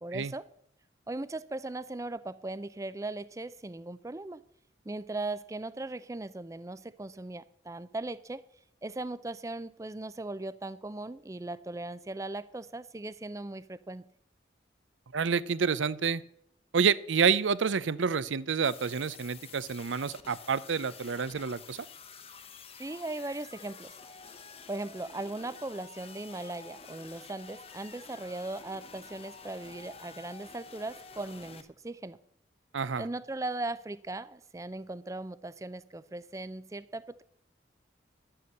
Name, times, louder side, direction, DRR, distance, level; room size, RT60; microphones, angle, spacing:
voice 1, 0.0-0.5 1.1-4.4 4.9-8.4 8.8-14.0 22.8-23.9 24.7-32.2 33.0-37.2, right 2 dB, 15° right, 16 dB, 0.4 m, -38 dB
voice 2, 15.1-16.2 16.7-21.9 32.7-33.1, right 6 dB, 90° right, 18 dB, 0.6 m, -28 dB
sound 1, 18.6-31.6, left 5 dB, 30° left, 0.9 m, -49 dB
11.5 x 7.8 x 7.8 m, 0.71 s
head